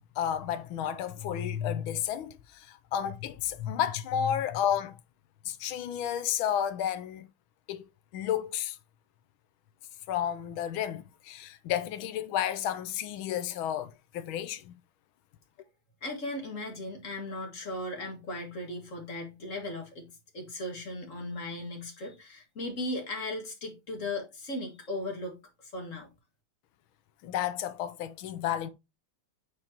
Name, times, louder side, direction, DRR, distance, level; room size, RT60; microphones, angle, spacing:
voice 1, 0.2-5.0 5.4-7.3 7.7-7.8 8.1-8.8 10.1-14.8 27.2-28.7, left 10 dB, 75° left, 1.4 m, -32 dB
voice 2, 16.0-26.1, left 1 dB, 40° left, 2.0 m, -37 dB
8.8 x 4.6 x 2.8 m
omnidirectional pair, 2.4 m